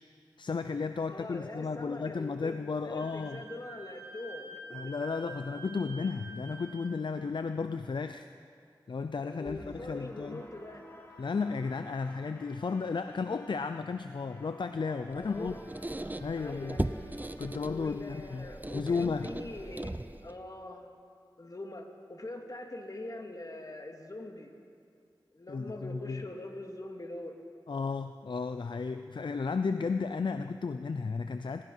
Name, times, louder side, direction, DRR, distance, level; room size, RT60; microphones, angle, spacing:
voice 1, 0.4-3.4 4.7-8.3 8.9-10.4 11.2-15.5 16.2-16.8 17.4-18.5 18.7-19.3 25.5-26.2 27.7-31.6, left 4 dB, 70° left, 9 dB, 0.6 m, -34 dB
voice 2, 1.1-2.6 2.8-4.9 9.3-10.8 15.1-15.6 16.4-16.9 17.7-20.9 21.4-24.5 25.3-27.4, left 1 dB, 45° left, 3 dB, 2.5 m, -43 dB
Wind instrument woodwind instrument, 3.0-6.9, right 3 dB, 35° right, 7.6 m, -47 dB
sound 1, 9.4-18.4, left 1 dB, 30° left, 4.3 m, -53 dB
Squeak, 15.1-20.4, right 1 dB, 20° right, 0.8 m, -38 dB
24.5 x 20.0 x 5.7 m, 2.4 s
wide cardioid pair, 45°, 8 cm